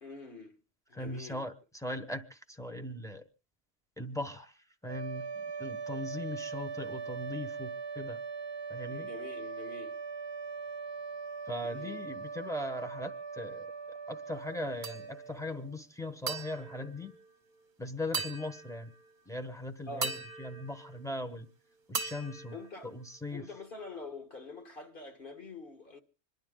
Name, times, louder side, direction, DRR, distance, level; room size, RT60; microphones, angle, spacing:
voice 1, 0.0-0.6 0.9-1.5 8.9-10.0 11.6-12.0 19.9-20.2 22.5-22.9 23.3-26.0, left 3 dB, 55° left, 1.7 m, -45 dB
voice 2, 0.9-3.2 4.0-8.2 8.7-9.1 11.5-13.7 14.1-17.2 17.8-18.9 19.3-21.5 21.9-22.5 22.8-23.4, left 1 dB, 5° left, 1.0 m, -39 dB
sound 1, 4.8-15.8, right 5 dB, 25° right, 0.8 m, -41 dB
sound 2, 14.8-15.4 16.3-17.7 18.1-19.2 20.0-21.5 21.9-23.4, right 4 dB, 50° right, 1.2 m, -40 dB
26.5 x 11.0 x 3.8 m
omnidirectional pair, 1.1 m